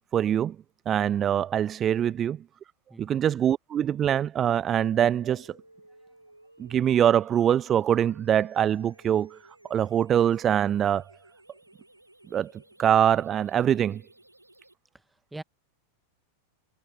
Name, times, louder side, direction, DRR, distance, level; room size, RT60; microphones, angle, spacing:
voice 1, 0.1-0.6 0.9-2.4 3.0-5.6 6.6-9.4 9.7-11.1 12.3-14.0, right 9 dB, 25° right, 0.3 m, -24 dB
voice 2, 2.9-3.2 14.9-15.4, right 2 dB, 5° right, 1.5 m, -44 dB
sound 1, 4.7-14.7, right 1 dB, 85° right, 1.8 m, -56 dB
figure-of-eight pair, 90°, 0 cm